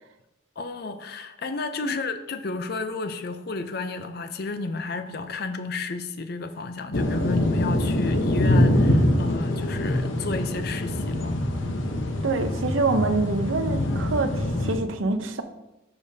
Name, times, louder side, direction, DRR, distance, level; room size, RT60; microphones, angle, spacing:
voice 1, 0.6-11.3, left 3 dB, 50° left, 0.5 m, -32 dB
sound 1, 6.9-14.8, left 1 dB, 75° left, 0.8 m, -24 dB
voice 2, 12.2-15.4, right 3 dB, 75° right, 0.7 m, -26 dB
11.5 x 5.2 x 2.7 m
head